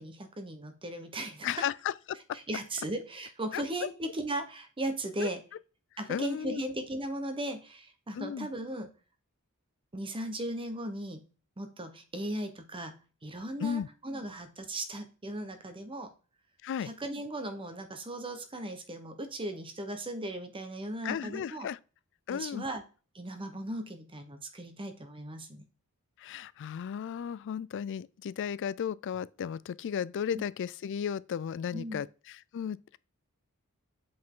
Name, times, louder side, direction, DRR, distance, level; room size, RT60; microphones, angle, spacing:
voice 1, 0.0-1.6 2.3-5.4 6.0-8.9 9.9-11.3 11.6-16.1 16.8-21.7 22.3-22.8 23.1-25.6 30.3-30.4 31.7-32.0, right 1 dB, 25° right, 0.9 m, -37 dB
voice 2, 1.4-1.9 3.5-3.6 5.2-5.3 6.1-6.6 8.1-8.5 13.6-13.9 16.6-16.9 21.0-21.8 22.3-22.6 26.2-33.0, left 8 dB, 55° left, 0.3 m, -34 dB
8.0 x 5.2 x 3.7 m
head